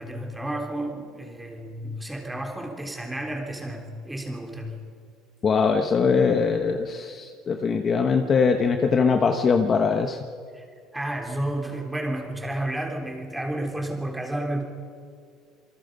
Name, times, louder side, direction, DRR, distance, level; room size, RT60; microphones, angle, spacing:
voice 1, 0.0-4.8 10.5-10.6 10.9-14.6, right 1 dB, 5° right, 2 dB, 3.5 m, -31 dB
voice 2, 5.4-10.2, left 5 dB, 30° left, 6 dB, 1.1 m, -22 dB
27.5 x 24.0 x 5.4 m, 2.1 s
cardioid pair, 155°, 0 cm